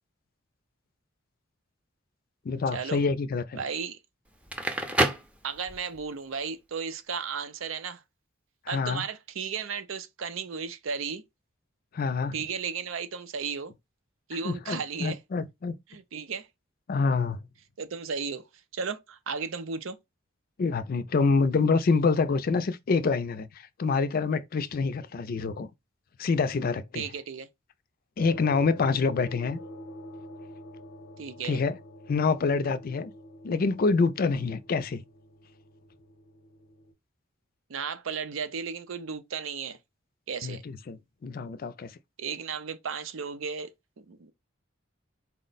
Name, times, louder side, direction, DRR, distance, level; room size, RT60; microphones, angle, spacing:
voice 1, 2.5-3.6 8.7-9.0 11.9-12.3 14.4-15.8 16.9-17.4 20.6-23.5 23.8-25.7 26.2-27.1 28.2-29.6 31.4-31.8 32.1-33.1 33.4-35.0 40.4-41.0 41.2-41.9, left 4 dB, 50° left, 0.4 m, -26 dB
voice 2, 3.6-4.0 5.4-8.0 8.7-11.2 12.3-13.7 14.3-15.2 15.9-16.5 17.8-18.5 18.7-20.0 26.9-27.5 31.2-31.6 37.7-39.8 40.3-40.6 42.2-44.3, right 6 dB, 90° right, 0.6 m, -34 dB
Crackle, 4.3-6.0, right 1 dB, 5° right, 0.5 m, -28 dB
sound 1, 28.2-36.9, left 1 dB, 85° left, 0.7 m, -46 dB
4.3 x 2.1 x 3.9 m
head